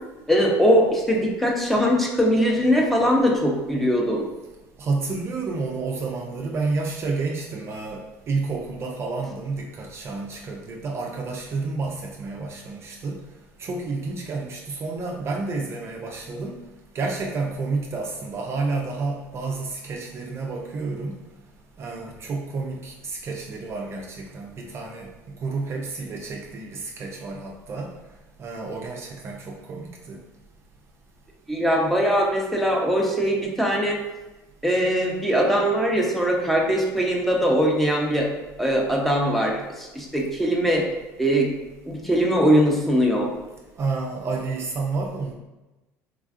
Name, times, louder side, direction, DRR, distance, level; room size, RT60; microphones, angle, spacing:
voice 1, 0.3-4.3 31.5-34.0 34.6-38.3 38.6-40.8 41.2-41.5 41.9-43.3, equal, ahead, -2 dB, 0.6 m, -21 dB
voice 2, 4.8-13.2 13.6-16.6 16.9-21.2 21.8-25.1 25.4-27.9 28.4-30.2 43.8-45.3, right 3 dB, 40° right, 0 dB, 0.4 m, -30 dB
3.2 x 2.4 x 2.4 m, 1.1 s
supercardioid pair, 90°, 7 cm